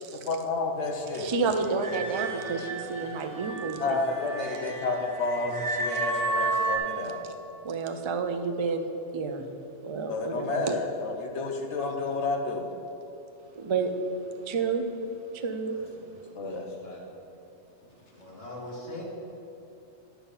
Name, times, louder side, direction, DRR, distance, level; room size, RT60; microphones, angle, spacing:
voice 1, 0.3-1.3 3.8-7.2 10.1-12.7 16.4-16.6, left 3 dB, 70° left, 2 dB, 1.2 m, -30 dB
voice 2, 1.2-4.0 7.6-8.8 9.1-9.5 9.8-10.8 13.6-13.9 14.5-14.8 15.4-15.8, right 4 dB, 35° right, 6 dB, 0.4 m, -30 dB
sound 1, 1.8-6.8, right 3 dB, 15° right, 1.0 m, -32 dB
voice 3, 15.7-17.2 18.1-19.0, left 1 dB, 85° left, -5 dB, 2.0 m, -43 dB
9.9 x 5.8 x 5.6 m, 3.0 s
omnidirectional pair, 1.3 m